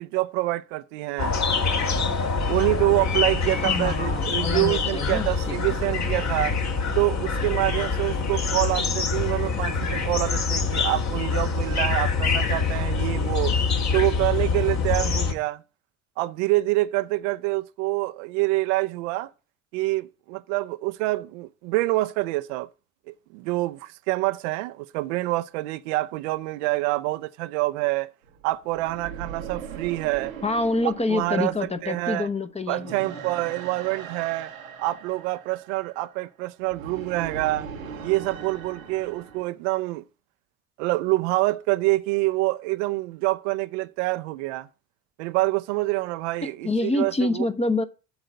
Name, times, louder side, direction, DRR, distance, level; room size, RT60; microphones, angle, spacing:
voice 1, 0.0-1.3 2.5-6.5 7.0-13.6 13.9-15.6 16.2-19.3 19.7-22.7 23.1-28.1 28.4-30.4 30.8-32.3 32.7-34.5 34.8-37.7 38.0-40.0 40.8-44.7 45.2-47.4, right 20 dB, 65° right, 0.6 m, -26 dB
sound 1, 1.2-15.3, left 4 dB, 40° left, 1.9 m, -25 dB
voice 2, 3.5-5.3 30.4-33.2 46.4-47.8, left 2 dB, 15° left, 0.9 m, -27 dB
sound 2, 28.2-39.4, right 7 dB, 85° right, 1.1 m, -40 dB
8.0 x 3.9 x 6.5 m
figure-of-eight pair, 60°, 40 cm